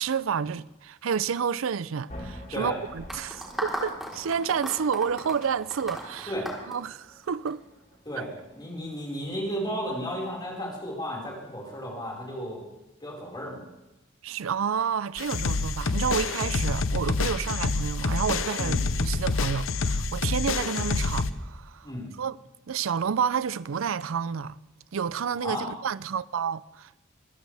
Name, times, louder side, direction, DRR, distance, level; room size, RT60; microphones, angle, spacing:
voice 1, 0.0-6.3 6.7-7.6 8.2-8.3 14.2-21.9 22.2-22.4 22.7-24.6 24.9-27.0, right 7 dB, 80° right, 0.5 m, -30 dB
sound 1, 2.1-10.1, equal, 40° left, 3.4 m, -48 dB
sound 2, 3.1-7.5, equal, ahead, 3.8 m, -35 dB
voice 2, 8.6-12.6 13.0-13.6 17.4-17.5 18.6-18.8 21.8-22.1 25.4-25.7, equal, 20° left, 4.8 m, -33 dB
sound 3, 15.2-21.3, left 3 dB, 80° left, 0.8 m, -27 dB
25.0 x 15.5 x 3.4 m
head